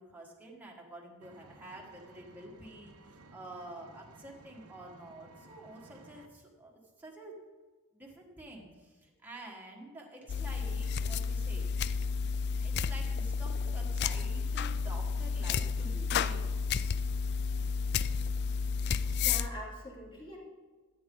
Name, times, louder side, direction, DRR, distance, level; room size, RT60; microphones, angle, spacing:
voice 1, 0.0-7.4 7.9-11.7 12.6-16.5, right 1 dB, 10° right, -2 dB, 1.5 m, -49 dB
Engine, 1.2-6.2, right 2 dB, 80° right, 1.0 m, -56 dB
sound 1, 10.3-19.5, left 5 dB, 50° left, 0.3 m, -31 dB
voice 2, 17.8-18.3 19.1-20.4, equal, 20° left, -5 dB, 3.2 m, -46 dB
13.5 x 8.7 x 3.9 m, 1.4 s
head